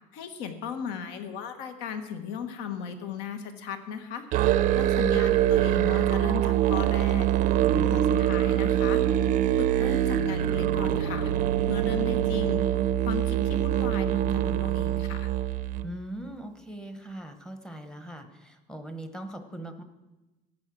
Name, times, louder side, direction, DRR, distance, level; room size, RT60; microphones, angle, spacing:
voice 1, 0.1-4.3 4.7-7.3 7.9-9.0 9.6-11.3 11.7-15.3, left 7 dB, 65° left, 8 dB, 1.5 m, -37 dB
Musical instrument, 4.3-15.9, right 12 dB, 45° right, 0.6 m, -24 dB
voice 2, 15.8-19.8, right 1 dB, 5° left, 8 dB, 1.0 m, -40 dB
14.5 x 8.9 x 6.2 m, 1.1 s
cardioid pair, 160°, 19 cm